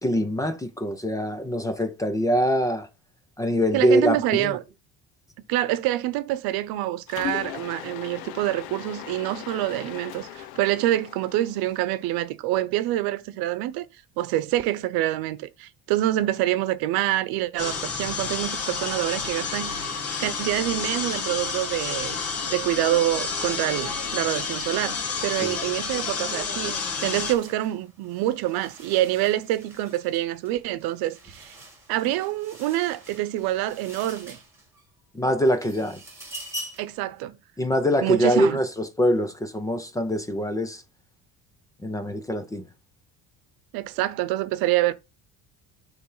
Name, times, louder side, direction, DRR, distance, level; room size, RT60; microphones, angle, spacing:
voice 1, 0.0-2.9 3.4-4.6 25.4-25.6 35.1-36.0 37.6-40.8 41.8-42.7, equal, 10° left, 0.6 m, -24 dB
voice 2, 3.7-4.6 5.5-13.8 14.2-22.2 22.5-31.6 31.9-34.4 36.8-37.4 38.0-38.6 43.7-44.9, right 14 dB, 80° right, 0.9 m, -26 dB
Mechanisms, 7.1-12.2, left 12 dB, 80° left, 0.9 m, -38 dB
sound 1, 17.6-27.3, left 5 dB, 40° left, 1.6 m, -30 dB
sound 2, 25.8-26.0 26.2-34.9 35.3-37.0, equal, 5° right, 2.4 m, -44 dB
9.5 x 3.4 x 5.5 m
cardioid pair, 175°, 36 cm